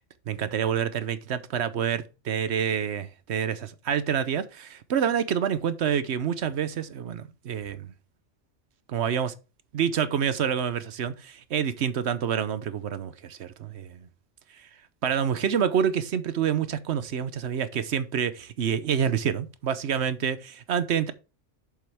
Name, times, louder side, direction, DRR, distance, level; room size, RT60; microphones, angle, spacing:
voice 1, 0.3-7.9 8.9-9.3 9.7-14.0 14.5-14.7 15.0-21.1, right 8 dB, 65° right, 1.0 m, -27 dB
7.6 x 7.0 x 3.4 m
omnidirectional pair, 1.3 m